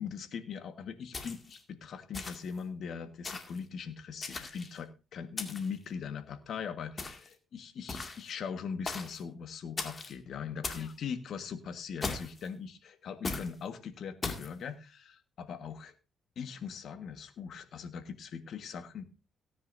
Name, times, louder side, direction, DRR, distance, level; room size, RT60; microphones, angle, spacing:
voice 1, 0.0-15.9 16.3-19.1, left 6 dB, 65° left, 9 dB, 1.6 m, -40 dB
sound 1, 1.1-1.6 2.1-2.6 3.2-3.6 4.2-4.8 5.4-5.8 7.0-7.3 7.9-8.3 8.9-9.2 9.8-10.1 10.6-10.9 12.0-12.5 13.2-13.5 14.2-14.5, left 3 dB, 35° left, 2.2 m, -38 dB
17.5 x 9.7 x 2.7 m, 0.31 s
cardioid pair, 90°, 0 cm